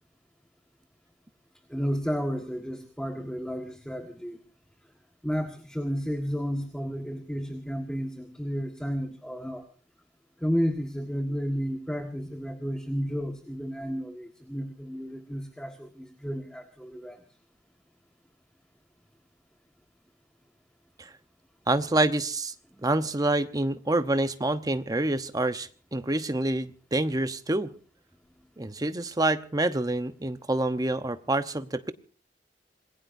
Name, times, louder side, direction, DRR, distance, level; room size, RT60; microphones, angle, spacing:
voice 1, 1.7-4.4 5.2-9.6 10.4-17.2 22.7-22.8, equal, 5° left, 5 dB, 1.7 m, -32 dB
voice 2, 21.7-22.5 22.8-27.7 28.6-31.9, right 2 dB, 20° right, 10 dB, 0.9 m, -27 dB
27.0 x 20.0 x 2.7 m, 0.39 s
head